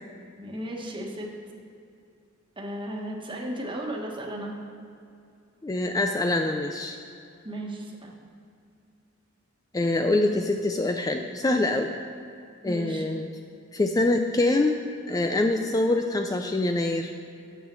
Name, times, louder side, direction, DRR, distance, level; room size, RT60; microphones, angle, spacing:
voice 1, 0.4-1.3 2.6-4.5 7.4-8.1 12.6-13.0, right 1 dB, 25° right, 0 dB, 1.3 m, -35 dB
voice 2, 5.6-7.0 9.7-11.9 12.6-13.3 13.7-14.8 15.1-17.1, left 2 dB, 20° left, 5 dB, 0.4 m, -25 dB
9.1 x 7.3 x 6.1 m, 2.5 s
head